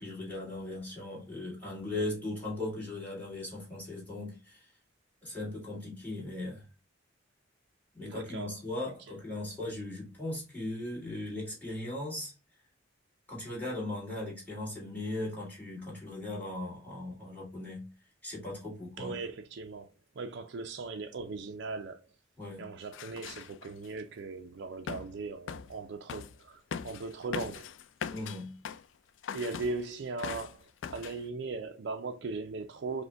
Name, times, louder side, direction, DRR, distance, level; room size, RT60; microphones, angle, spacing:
voice 1, 0.0-4.7 5.2-6.6 7.9-12.3 13.3-17.9 18.2-19.2 22.4-22.7 28.1-28.6, left 2 dB, 10° left, 2.1 m, -38 dB
voice 2, 8.0-8.5 19.0-22.0 22.6-27.7 29.3-33.0, right 3 dB, 60° right, 0.4 m, -38 dB
sound 1, 22.9-23.9 24.9-25.2 25.5-25.8 26.1-26.4 26.7-28.9 29.2-29.9 30.2-30.6 30.8-31.2, left 7 dB, 65° left, 0.3 m, -40 dB
5.1 x 2.2 x 3.3 m
head